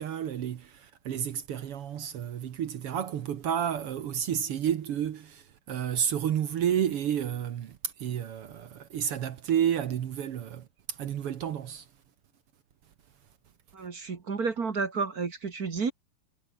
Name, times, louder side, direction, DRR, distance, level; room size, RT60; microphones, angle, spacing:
voice 1, 0.0-11.8, right 9 dB, 65° right, 1.4 m, -31 dB
voice 2, 13.7-15.9, right 5 dB, 40° right, 1.4 m, -31 dB
omnidirectional pair, 4.2 m